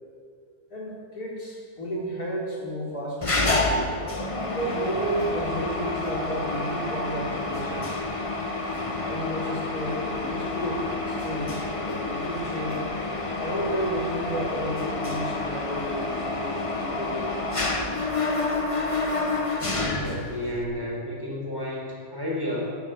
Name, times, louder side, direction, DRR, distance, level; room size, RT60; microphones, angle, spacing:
voice 1, 0.7-3.3 4.4-8.0 9.1-12.8 13.4-17.5, equal, 80° left, -4 dB, 4.7 m, -32 dB
Mechanisms, 3.2-20.6, left 2 dB, 25° left, 1.2 m, -29 dB
voice 2, 19.6-22.7, left 1 dB, 15° right, -4 dB, 4.8 m, -32 dB
15.0 x 12.0 x 7.9 m, 2.1 s
omnidirectional pair, 1.6 m